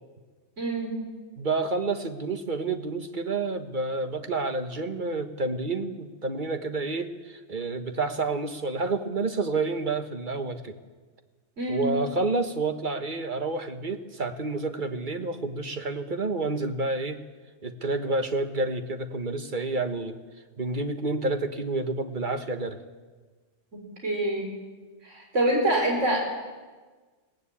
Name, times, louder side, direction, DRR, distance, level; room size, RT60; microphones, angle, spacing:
voice 1, 0.6-1.0 11.6-12.0 23.7-24.5 25.0-26.3, right 1 dB, 85° right, 0 dB, 4.3 m, -26 dB
voice 2, 1.4-10.8 11.7-17.2 17.6-20.2 20.6-22.8, right 3 dB, 45° right, 7 dB, 1.4 m, -29 dB
21.5 x 17.5 x 8.5 m, 1.4 s
omnidirectional pair, 1.2 m